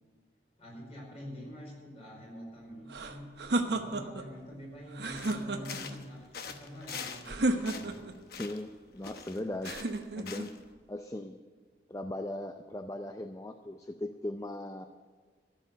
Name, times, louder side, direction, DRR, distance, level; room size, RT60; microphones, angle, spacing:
voice 1, 0.6-3.2 3.6-8.0, equal, 35° left, -2 dB, 5.0 m, -46 dB
sound 1, 2.9-4.3 4.9-6.0 7.3-8.2 9.6-10.5, right 2 dB, 70° right, 1.0 m, -32 dB
sound 2, 5.2-7.3 7.6-8.7 9.0-10.6, left 6 dB, 55° left, 1.0 m, -43 dB
voice 2, 8.3-9.8 10.2-10.6 10.9-11.4 11.9-14.9, left 1 dB, 20° left, 8 dB, 0.4 m, -38 dB
13.5 x 7.5 x 9.9 m, 1.5 s
head